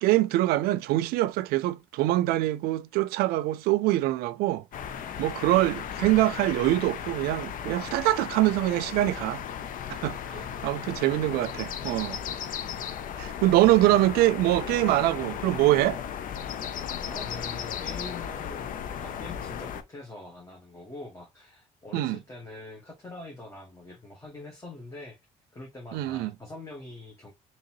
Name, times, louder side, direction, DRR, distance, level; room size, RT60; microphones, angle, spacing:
voice 1, 0.0-4.6 5.2-9.4 9.9-10.2 10.6-12.2 13.2-16.0 21.9-22.2 25.9-26.3, right 16 dB, 85° right, 0.4 m, -24 dB
sound 1, 4.7-19.8, left 8 dB, 60° left, 0.6 m, -36 dB
voice 2, 17.1-25.2 25.5-27.3, left 2 dB, 20° left, 1.5 m, -43 dB
3.8 x 3.0 x 2.9 m
cardioid pair, 85°, 15 cm